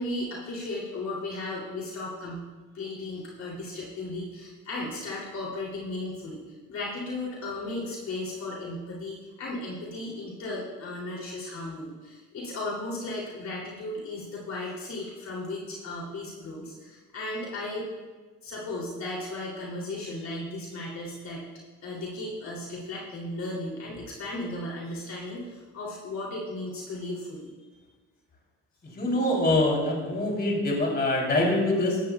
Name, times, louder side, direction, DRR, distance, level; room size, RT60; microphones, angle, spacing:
voice 1, 0.0-2.5 2.7-6.4 6.7-17.9 18.4-21.5 21.8-27.7, left 2 dB, 65° left, -4 dB, 3.4 m, -35 dB
voice 2, 29.0-32.0, left 1 dB, 35° left, -2 dB, 3.8 m, -24 dB
16.0 x 12.5 x 2.5 m, 1.3 s
cardioid pair, 90°, 30 cm